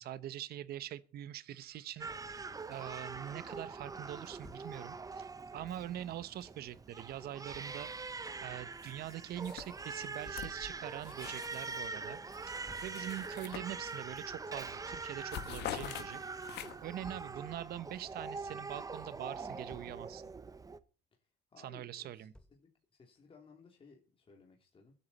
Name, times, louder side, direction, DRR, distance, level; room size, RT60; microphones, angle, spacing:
voice 1, 0.0-2.4 2.7-7.9 8.4-16.2 16.8-20.2 21.6-22.3, right 12 dB, 65° right, 1.0 m, -44 dB
Crying sobbing, 2.0-20.8, right 4 dB, 20° right, 0.9 m, -44 dB
Thump thud, 4.4-4.7 7.5-7.7 10.2-10.5 12.7-13.0 14.9-15.2 17.0-17.4 19.4-20.0 22.3-22.7, left 1 dB, 5° left, 1.0 m, -55 dB
sound 1, 8.8-9.1 9.4-11.9 12.3-14.2 14.5-14.8 15.0-17.0, left 11 dB, 80° left, 1.8 m, -45 dB
voice 2, 21.5-24.9, left 4 dB, 30° left, 3.1 m, -60 dB
22.0 x 8.6 x 4.2 m
cardioid pair, 110°, 17 cm